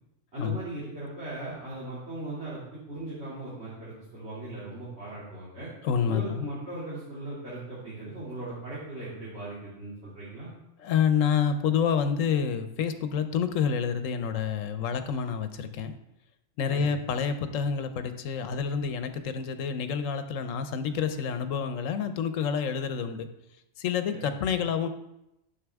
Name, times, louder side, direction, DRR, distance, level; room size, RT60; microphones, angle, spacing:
voice 1, 0.3-5.7 6.0-10.5 16.7-17.0 24.1-24.2, right 2 dB, 55° right, -10 dB, 2.9 m, -38 dB
voice 2, 5.8-6.4 10.8-15.9 16.6-23.3 23.8-24.9, left 7 dB, 85° left, 9 dB, 1.1 m, -28 dB
11.0 x 6.3 x 3.5 m, 0.88 s
omnidirectional pair, 1.3 m